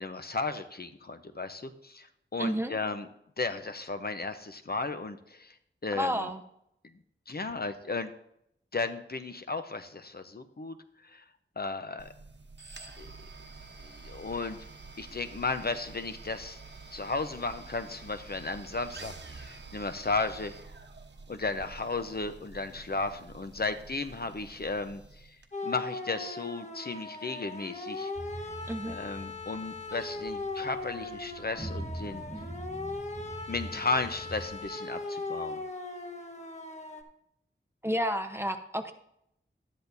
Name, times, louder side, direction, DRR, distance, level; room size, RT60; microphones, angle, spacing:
voice 1, 0.0-3.1 3.4-5.5 5.8-6.3 7.3-8.1 8.7-10.8 11.0-11.2 11.6-12.1 13.0-13.1 13.8-14.6 15.0-16.6 16.9-20.5 21.3-25.3 25.6-28.1 28.8-32.2 33.5-35.6, left 3 dB, 50° left, 9 dB, 0.8 m, -34 dB
voice 2, 2.4-2.7 5.9-6.4 28.7-29.0 37.8-38.9, equal, 10° right, 6 dB, 1.0 m, -30 dB
sound 1, 12.0-25.5, right 3 dB, 60° right, 1.0 m, -48 dB
sound 2, 25.5-37.0, left 3 dB, 35° left, 1.3 m, -39 dB
sound 3, 28.1-34.7, right 1 dB, 35° right, 2.1 m, -43 dB
12.5 x 10.0 x 2.7 m, 0.75 s
wide cardioid pair, 65°, 20 cm